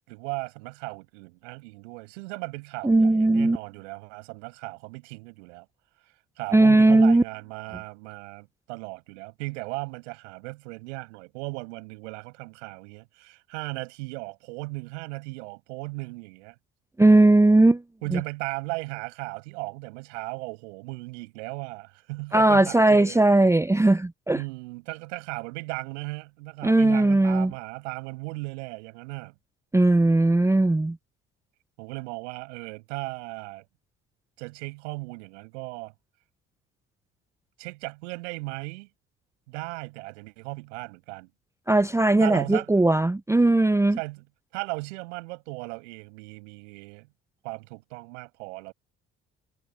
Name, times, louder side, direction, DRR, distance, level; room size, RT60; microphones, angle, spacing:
voice 1, 0.1-5.7 6.4-16.5 18.0-23.2 24.3-29.3 31.8-33.6 34.4-35.9 37.6-38.9 39.5-41.3 42.2-42.7 43.9-44.2 44.5-47.1 47.4-48.7, right 26 dB, 75° right, 6.7 m, -36 dB
voice 2, 2.8-3.6 6.5-7.2 17.0-17.8 18.1-18.2 22.3-24.4 26.6-27.5 29.7-31.0 41.7-44.0, right 2 dB, 10° right, 0.7 m, -18 dB
hypercardioid pair, 50°, 36 cm